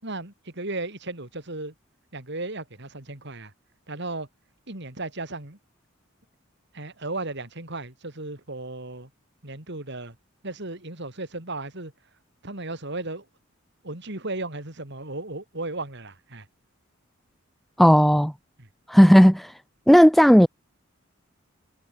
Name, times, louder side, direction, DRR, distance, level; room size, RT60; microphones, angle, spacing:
voice 1, 0.0-1.7 2.1-3.5 3.9-4.3 4.7-5.6 6.7-9.1 9.4-10.2 10.4-11.9 12.4-13.3 13.8-16.5 18.6-18.7, right 2 dB, 55° right, 3.8 m, -35 dB
voice 2, 17.8-18.3 18.9-19.5 19.9-20.5, equal, ahead, 0.3 m, -14 dB
head